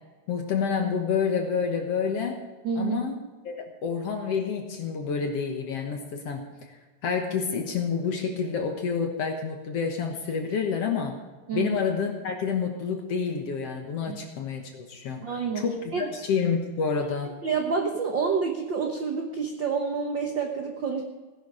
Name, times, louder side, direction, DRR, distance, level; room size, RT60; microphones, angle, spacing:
voice 1, 0.3-2.4 2.8-6.4 6.7-6.8 7.0-11.2 11.5-15.2 15.6-17.3, left 6 dB, 60° left, 3 dB, 1.9 m, -28 dB
voice 2, 2.6-3.0 11.5-11.8 14.1-14.2 15.2-15.6 15.9-16.1 17.4-21.0, right 5 dB, 90° right, 3 dB, 1.0 m, -28 dB
17.5 x 10.5 x 4.9 m, 1.3 s
omnidirectional pair, 4.0 m